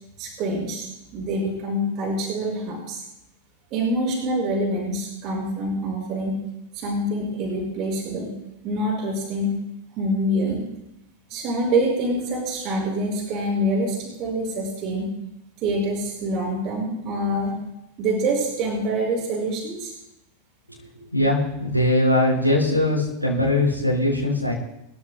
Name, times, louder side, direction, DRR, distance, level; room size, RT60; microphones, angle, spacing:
voice 1, 0.2-3.0 3.7-6.4 6.7-8.3 8.6-9.5 10.0-10.7 11.3-15.1 15.6-17.6 18.0-19.9, right 1 dB, 40° right, -1 dB, 5.5 m, -25 dB
voice 2, 21.1-24.5, left 1 dB, 85° left, -6 dB, 4.9 m, -21 dB
28.0 x 14.5 x 2.2 m, 0.86 s
figure-of-eight pair, 90°, 0 cm